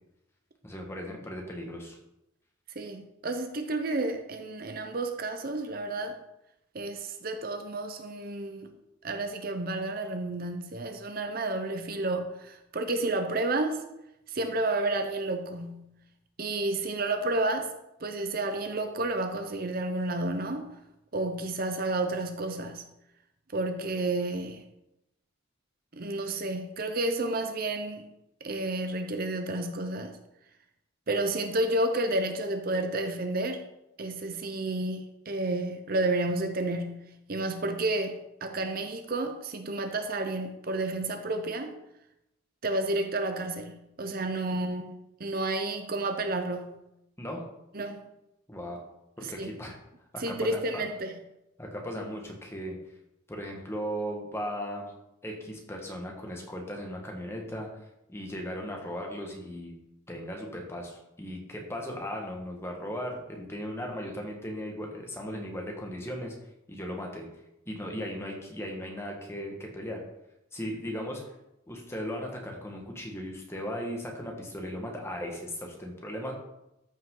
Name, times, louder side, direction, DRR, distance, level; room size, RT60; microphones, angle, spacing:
voice 1, 0.6-2.0 47.2-47.4 48.5-48.8 49.2-49.8 50.1-50.9 51.6-52.8 53.3-54.9 55.2-57.7 58.1-59.7 60.1-66.3 66.7-67.3 67.7-70.0 70.5-71.3 71.7-76.3, equal, 15° left, 0 dB, 1.5 m, -37 dB
voice 2, 2.8-6.2 6.7-8.7 9.0-13.8 14.3-15.9 16.4-17.7 18.0-20.7 21.1-22.8 23.5-24.6 25.9-28.0 28.4-30.2 31.1-33.6 34.0-37.0 37.3-41.7 42.6-46.8 47.7-48.0 49.2-49.5 50.2-51.2, right 2 dB, 45° right, 6 dB, 0.7 m, -31 dB
13.5 x 5.6 x 3.8 m, 0.87 s
head